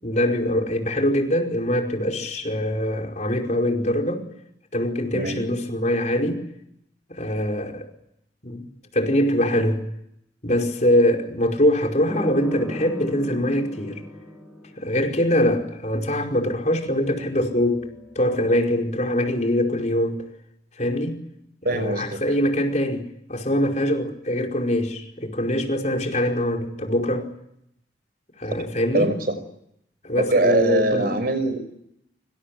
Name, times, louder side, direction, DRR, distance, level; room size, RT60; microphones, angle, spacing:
voice 1, 0.0-4.3 4.7-6.4 7.1-7.9 8.4-8.7 8.9-9.8 10.4-14.0 14.8-17.9 18.1-20.2 20.8-21.2 21.7-27.3 28.4-29.1 30.0-31.1, left 1 dB, 40° left, 5.0 m, -23 dB
voice 2, 5.1-5.4 21.6-22.2 28.9-29.4 30.2-31.6, right 2 dB, 55° right, 5.5 m, -22 dB
sound 1, 12.1-15.2 16.9-18.6, equal, ahead, 7.1 m, -36 dB
26.0 x 26.0 x 8.6 m
head